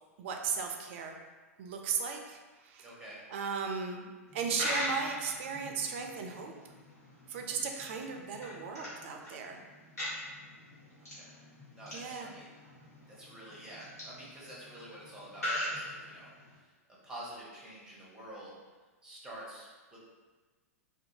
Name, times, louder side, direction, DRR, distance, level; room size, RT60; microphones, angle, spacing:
voice 1, 0.2-1.2 1.6-2.9 3.3-6.5 7.3-9.6 11.9-12.3, right 6 dB, 50° right, 3 dB, 0.4 m, -36 dB
voice 2, 2.8-3.2 11.2-11.3 11.7-12.5 13.1-16.7 17.0-18.6 19.0-20.0, right 1 dB, 10° right, -6 dB, 0.9 m, -48 dB
Coin (dropping), 4.3-16.6, left 1 dB, 80° left, 1.2 m, -41 dB
2.6 x 2.3 x 2.7 m, 1.3 s
figure-of-eight pair, 100°, 8 cm